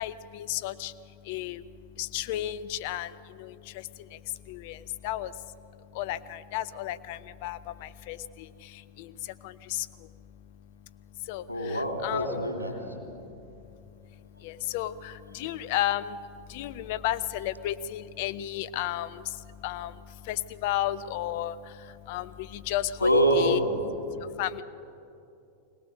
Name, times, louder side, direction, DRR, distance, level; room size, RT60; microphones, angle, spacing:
voice 1, 0.0-1.6 2.0-5.5 5.9-10.1 11.2-12.3 12.8-13.4 14.4-23.6 24.1-24.6, left 13 dB, 50° left, 14 dB, 0.6 m, -34 dB
voice 2, 11.5-12.7 23.0-23.8, equal, 90° right, 3 dB, 2.9 m, -25 dB
21.5 x 18.5 x 6.5 m, 2.7 s
figure-of-eight pair, 90°, 0 cm